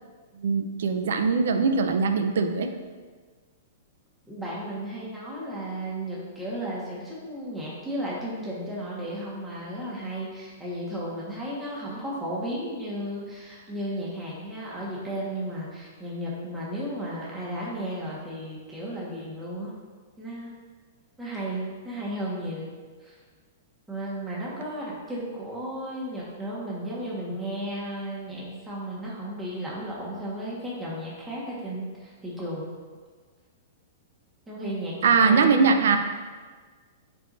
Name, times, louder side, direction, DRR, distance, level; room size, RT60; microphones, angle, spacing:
voice 1, 0.4-2.7 35.0-36.0, right 5 dB, 75° right, 7 dB, 0.7 m, -21 dB
voice 2, 4.3-19.7 20.2-20.5 21.2-22.7 23.0-23.2 23.9-32.7 34.5-35.6, right 1 dB, 10° right, -7 dB, 1.7 m, -34 dB
9.9 x 4.7 x 2.7 m, 1.5 s
hypercardioid pair, 135°, 0 cm